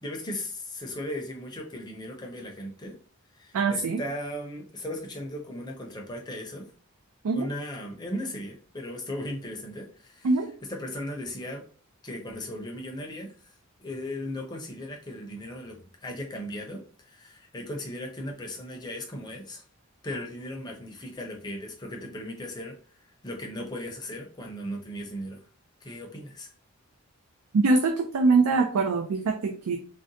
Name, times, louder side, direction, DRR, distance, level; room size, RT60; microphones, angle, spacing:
voice 1, 0.0-2.9 3.3-6.7 7.3-10.3 10.7-11.6 12.0-13.5 13.8-19.6 20.0-22.8 23.2-25.5 25.8-26.5, left 1 dB, 20° left, 2 dB, 0.5 m, -37 dB
voice 2, 3.5-4.0 7.2-7.5 10.2-10.5 27.5-29.8, right 3 dB, 80° right, 3 dB, 0.4 m, -23 dB
3.7 x 2.1 x 2.6 m, 0.41 s
head